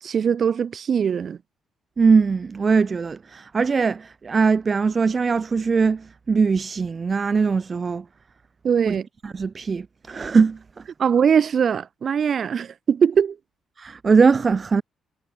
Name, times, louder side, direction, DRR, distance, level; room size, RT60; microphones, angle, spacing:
voice 1, 0.0-1.4 8.6-9.1 11.0-13.4, right 7 dB, 45° right, 3.5 m, -21 dB
voice 2, 2.0-8.0 8.9-9.0 9.2-10.8 13.8-14.8, right 5 dB, 30° right, 3.0 m, -21 dB
cardioid pair, 130°, 0 cm